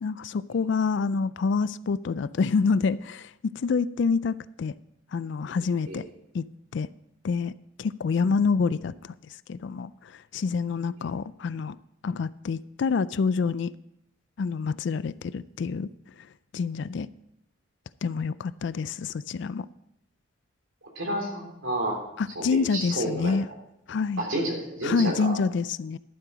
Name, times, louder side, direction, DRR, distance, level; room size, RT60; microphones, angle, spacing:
voice 1, 0.0-3.3 3.6-4.7 5.1-6.0 6.3-6.4 6.7-6.9 7.2-7.5 7.8-9.1 9.5-11.8 12.0-13.7 14.4-15.9 16.5-17.1 18.0-19.7 22.2-23.5 23.9-24.3 24.8-26.0, left 5 dB, 60° left, 0.3 m, -27 dB
voice 2, 21.0-22.0 22.4-22.5 22.7-23.4 24.2-25.3, right 1 dB, 70° right, 3.4 m, -30 dB
12.0 x 7.6 x 5.0 m
head